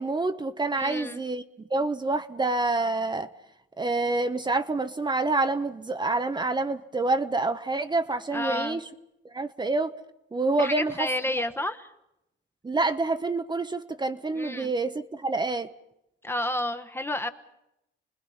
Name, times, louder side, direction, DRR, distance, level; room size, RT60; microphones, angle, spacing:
voice 1, 0.0-1.4 1.7-3.3 3.8-8.8 9.3-9.9 10.3-11.1 12.6-15.7, right 3 dB, 20° right, 9 dB, 0.9 m, -27 dB
voice 2, 0.7-1.2 8.3-8.8 10.6-11.9 14.3-14.7 16.2-17.3, left 1 dB, 10° left, 8 dB, 1.2 m, -30 dB
29.5 x 20.0 x 5.7 m, 0.86 s
cardioid pair, 90°, 20 cm